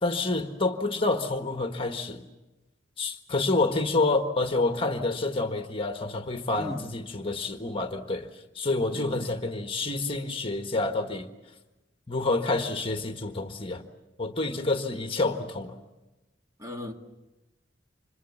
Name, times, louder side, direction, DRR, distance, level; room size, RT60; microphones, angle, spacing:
voice 1, 0.0-2.2 3.0-11.3 12.1-13.8 14.2-15.7, left 2 dB, 30° left, 1.5 m, -28 dB
voice 2, 6.6-6.9 8.9-9.3 16.6-16.9, left 1 dB, 20° right, 2.3 m, -36 dB
30.0 x 26.5 x 7.2 m
head